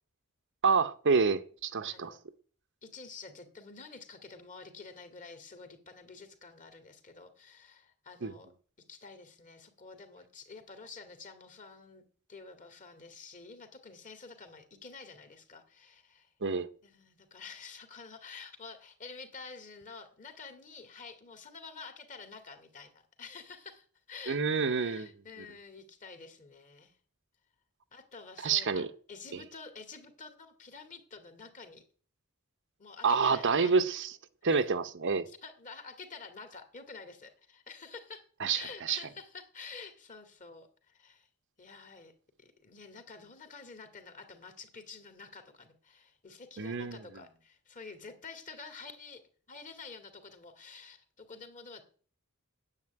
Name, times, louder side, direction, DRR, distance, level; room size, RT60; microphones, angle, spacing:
voice 1, 0.6-2.1 8.2-8.3 16.4-16.7 24.3-25.1 28.4-28.9 29.3-29.4 33.0-34.1 34.4-35.3 38.4-39.0 46.6-47.0, right 5 dB, 55° right, 0.8 m, -28 dB
voice 2, 1.9-2.2 2.8-8.5 8.9-12.0 12.3-16.3 16.8-27.0 27.9-31.8 32.8-33.7 34.5-34.7 35.3-38.3 38.5-41.3 41.6-42.1 42.4-49.2 49.5-51.8, left 4 dB, 35° left, 2.2 m, -49 dB
9.5 x 8.4 x 8.9 m
head